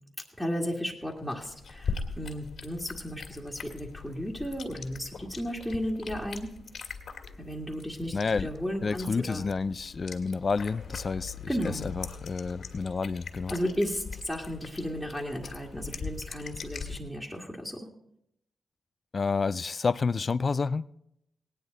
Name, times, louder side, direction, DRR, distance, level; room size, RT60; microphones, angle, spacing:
voice 1, 0.4-6.5 7.4-9.4 11.5-11.8 13.5-17.9, equal, ahead, 1.9 m, -34 dB
sound 1, 1.1-17.0, left 5 dB, 70° left, 2.0 m, -41 dB
voice 2, 8.1-8.5 8.8-13.5 19.1-20.8, left 4 dB, 50° left, 0.4 m, -29 dB
17.5 x 10.0 x 4.0 m
cardioid pair, 55°, 0 cm